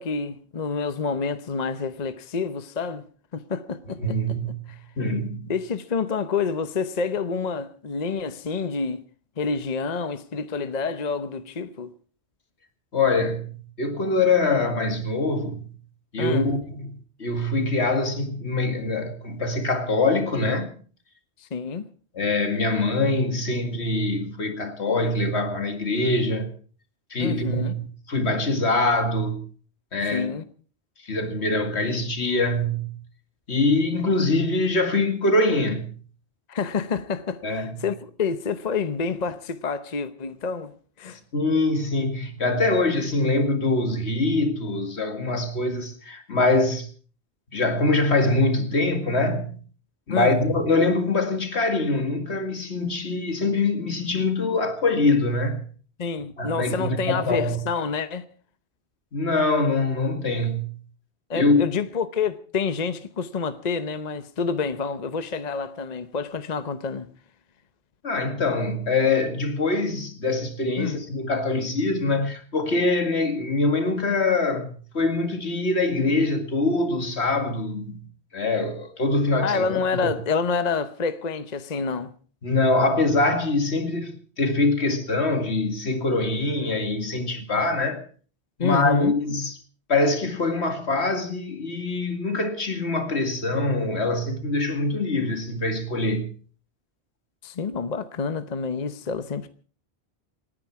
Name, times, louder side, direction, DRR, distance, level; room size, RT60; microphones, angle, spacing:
voice 1, 0.0-3.0 3.3-4.4 4.7-4.8 5.5-9.0 9.4-11.9 16.2-16.5 21.4-21.9 27.2-27.7 30.1-30.4 36.5-40.7 41.0-41.2 50.1-50.4 56.0-58.2 61.3-67.1 70.8-71.0 79.4-82.1 88.6-89.1 97.4-99.5, left 5 dB, 40° left, 0.9 m, -28 dB
voice 2, 4.0-5.5 12.9-15.6 16.1-20.7 22.1-26.5 27.1-27.8 28.1-29.4 29.9-30.3 31.0-33.0 33.5-35.9 37.4-37.8 41.3-46.9 47.5-49.6 50.1-55.6 56.4-57.6 59.1-60.8 61.3-61.6 68.0-78.0 78.3-80.1 82.4-88.0 88.6-89.6 89.9-96.3, left 2 dB, 75° left, 2.4 m, -24 dB
28.0 x 10.0 x 4.7 m
omnidirectional pair, 1.1 m